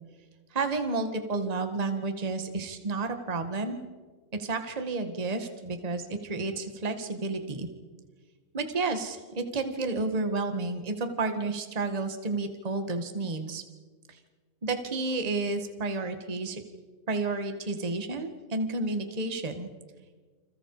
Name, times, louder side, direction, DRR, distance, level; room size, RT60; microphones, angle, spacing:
voice 1, 0.5-3.8 4.4-7.7 8.5-13.6 14.1-14.2 14.6-16.6 17.1-19.7, right 3 dB, 20° right, 7 dB, 1.1 m, -31 dB
29.0 x 28.0 x 5.0 m, 1.4 s
omnidirectional pair, 3.8 m